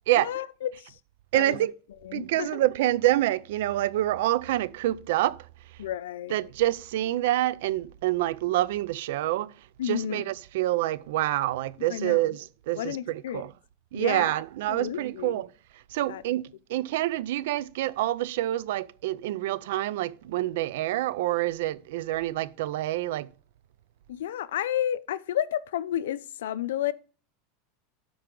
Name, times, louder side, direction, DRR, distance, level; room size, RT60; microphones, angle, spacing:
voice 1, 0.2-0.7 1.3-1.6 2.0-2.6 5.8-6.3 9.8-10.2 11.9-12.2 12.8-13.4 13.9-14.4 14.7-15.4 16.1-16.2 24.1-26.9, left 11 dB, 85° left, 0.5 m, -31 dB
voice 2, 1.3-1.7 2.1-5.5 6.3-9.5 9.8-13.5 13.9-15.5 15.9-23.3, right 15 dB, 75° right, 0.4 m, -27 dB
13.0 x 4.7 x 3.8 m
supercardioid pair, 130°, 0 cm